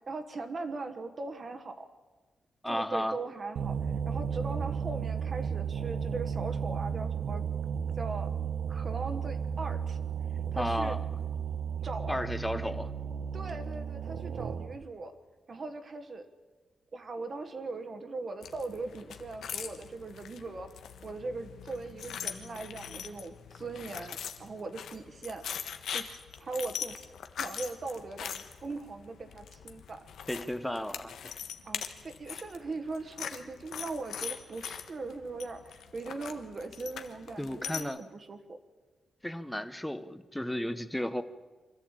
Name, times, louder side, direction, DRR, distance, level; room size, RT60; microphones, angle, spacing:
voice 1, 0.1-1.9 2.6-7.4 8.0-8.3 8.7-10.0 10.5-11.0 11.8-12.8 13.3-15.2 15.5-16.3 16.9-20.7 21.0-25.4 25.9-27.0 27.4-30.1 31.6-38.6, right 3 dB, 35° right, 8 dB, 1.3 m, -40 dB
voice 2, 2.6-3.2 10.5-11.0 12.1-12.9 30.3-31.1 37.4-38.0 39.2-41.2, equal, 5° left, 11 dB, 0.8 m, -33 dB
sound 1, 3.6-14.8, right 7 dB, 70° right, 0.9 m, -34 dB
sound 2, 18.4-37.8, left 8 dB, 90° left, 1.4 m, -42 dB
24.5 x 14.0 x 8.9 m, 1.3 s
wide cardioid pair, 165°, 0 cm